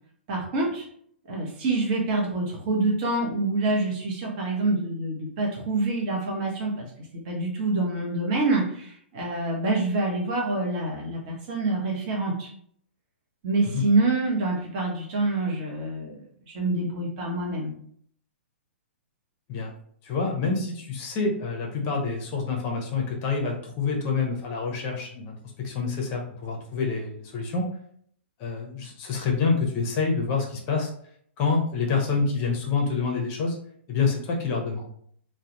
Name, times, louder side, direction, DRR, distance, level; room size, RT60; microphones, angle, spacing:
voice 1, 0.3-0.9 1.3-6.9 7.3-12.5 13.4-17.7, right 2 dB, 40° right, 0 dB, 0.7 m, -26 dB
voice 2, 20.0-27.7 28.4-30.9 31.4-33.6 33.9-34.9, left 4 dB, 30° left, 0 dB, 0.6 m, -27 dB
2.3 x 2.1 x 2.8 m, 0.64 s
figure-of-eight pair, 115°, 7 cm